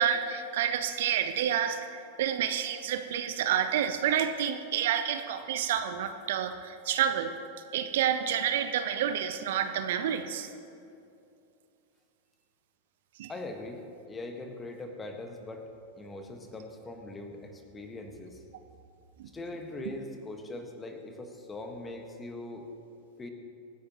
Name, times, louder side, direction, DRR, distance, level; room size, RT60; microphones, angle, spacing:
voice 1, 0.0-7.3 7.7-10.5 13.2-13.3 19.2-19.3, right 9 dB, 55° right, 9 dB, 0.7 m, -29 dB
voice 2, 13.3-13.8 14.1-15.7 16.0-18.4 19.3-22.7 23.2-23.3, left 2 dB, 15° left, 5 dB, 1.5 m, -41 dB
24.5 x 10.0 x 3.0 m, 2.6 s
figure-of-eight pair, 90°, 0 cm